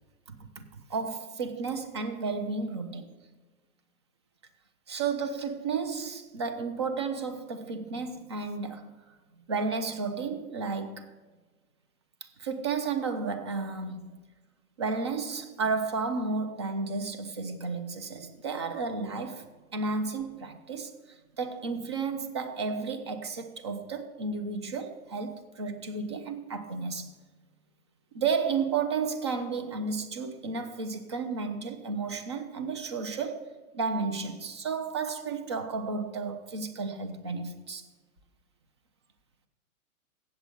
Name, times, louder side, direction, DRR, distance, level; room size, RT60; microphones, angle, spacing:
voice 1, 0.3-3.2 4.9-9.0 9.5-11.1 12.4-14.2 14.8-19.4 19.7-20.9 21.4-27.1 28.1-37.8, right 4 dB, 20° right, 0.3 m, -32 dB
8.1 x 7.7 x 6.7 m
hypercardioid pair, 125°, 44 cm